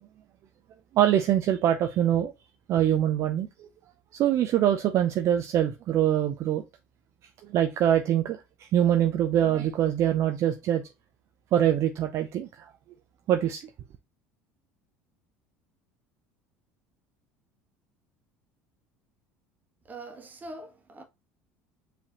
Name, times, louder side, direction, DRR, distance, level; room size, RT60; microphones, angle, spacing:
voice 1, 0.9-2.3 2.7-3.7 4.1-6.6 7.5-8.4 8.7-10.8 11.5-12.7 13.3-13.6, right 11 dB, 55° right, 0.5 m, -24 dB
voice 2, 19.9-21.0, right 2 dB, 30° right, 1.4 m, -43 dB
4.8 x 3.4 x 2.9 m
hypercardioid pair, 75°, 6 cm